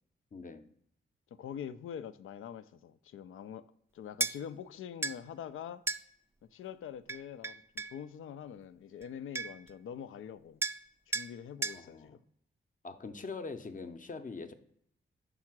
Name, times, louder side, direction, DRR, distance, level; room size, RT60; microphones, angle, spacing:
voice 1, 0.3-0.7 11.7-12.1 12.8-14.5, left 4 dB, 40° left, 0.7 m, -43 dB
voice 2, 1.4-3.6 3.9-5.8 6.5-10.6 11.1-12.2, left 8 dB, 90° left, 0.4 m, -44 dB
sound 1, 4.2-4.4 5.0-5.2 5.9-6.0 7.1-8.0 9.0-9.1 9.3-9.7 10.6-10.8 11.1-11.3 11.6-11.8, right 3 dB, 15° right, 0.3 m, -34 dB
5.4 x 4.8 x 6.0 m
cardioid pair, 75°, 20 cm